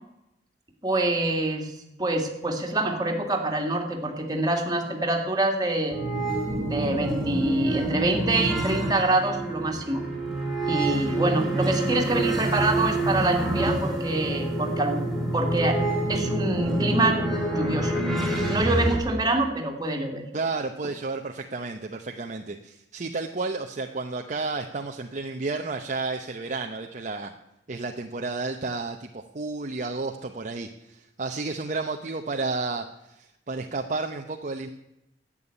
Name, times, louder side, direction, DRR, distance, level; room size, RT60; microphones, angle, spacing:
voice 1, 0.8-1.7 2.0-6.0 6.6-10.1 10.7-15.0 15.3-15.8 16.1-17.2 17.5-18.2 18.5-20.3, right 2 dB, 20° right, 2 dB, 2.1 m, -26 dB
sound 1, 5.9-19.0, right 1 dB, ahead, 2.7 m, -27 dB
voice 2, 20.3-27.3 27.7-34.7, right 3 dB, 45° right, 4 dB, 0.8 m, -32 dB
11.0 x 8.6 x 9.9 m, 0.88 s
head